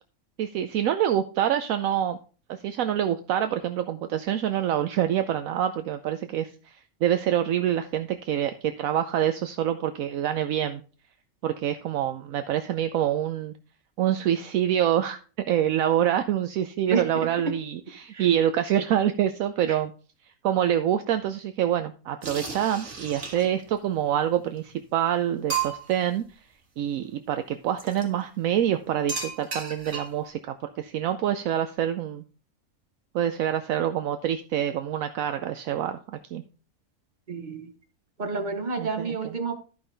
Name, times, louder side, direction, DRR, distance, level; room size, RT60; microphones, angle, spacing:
voice 1, 0.4-2.2 2.5-10.8 11.4-13.5 14.0-19.9 20.4-26.2 26.8-32.2 33.1-36.4 38.8-39.4, right 10 dB, 75° right, 8 dB, 1.0 m, -26 dB
sound 1, 22.2-23.7 24.6-24.7 25.0-25.1 25.5-26.1 27.8-28.1 29.1-30.3, right 6 dB, 55° right, 2.0 m, -33 dB
voice 2, 37.3-37.7 38.2-39.6, right 4 dB, 35° right, 8 dB, 1.1 m, -29 dB
12.5 x 5.5 x 3.3 m, 0.37 s
omnidirectional pair, 1.5 m